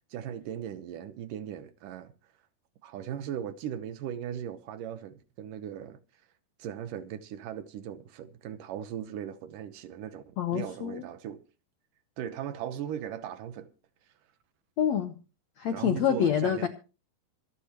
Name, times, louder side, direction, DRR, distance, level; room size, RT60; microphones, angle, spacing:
voice 1, 0.1-2.1 2.8-6.0 6.6-11.4 12.2-13.7 15.7-16.7, right 9 dB, 70° right, 2.3 m, -38 dB
voice 2, 10.4-11.0 14.8-15.1 15.6-16.7, left 9 dB, 70° left, 1.7 m, -27 dB
25.5 x 10.0 x 3.0 m
omnidirectional pair, 4.5 m